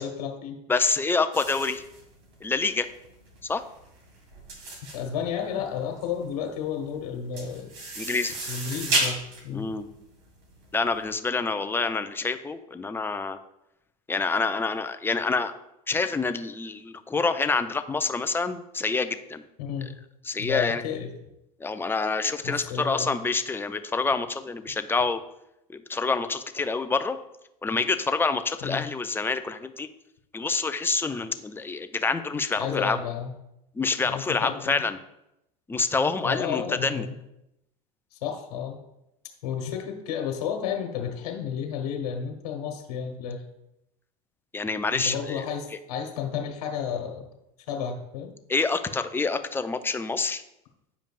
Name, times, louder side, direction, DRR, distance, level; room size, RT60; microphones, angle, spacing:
voice 1, 0.0-0.6 4.9-7.7 8.5-9.7 19.6-19.9 20.4-21.1 22.4-23.1 28.6-28.9 32.6-33.3 34.0-34.7 36.2-37.1 38.1-38.8 39.4-43.4 44.9-47.2 47.7-48.3, left 7 dB, 75° left, 3 dB, 1.2 m, -32 dB
voice 2, 0.7-1.8 2.4-2.9 3.5-3.6 8.0-8.3 9.5-9.9 10.7-13.4 14.1-15.5 15.9-19.4 20.2-20.8 21.6-25.2 25.7-27.2 27.6-29.9 30.3-33.0 33.8-35.0 35.7-37.1 44.5-45.4 48.5-50.4, left 4 dB, 10° left, 9 dB, 0.4 m, -27 dB
sound 1, 1.3-10.9, right 2 dB, 60° right, 2.1 m, -33 dB
8.9 x 5.1 x 2.5 m, 0.85 s
hypercardioid pair, 95°, 20 cm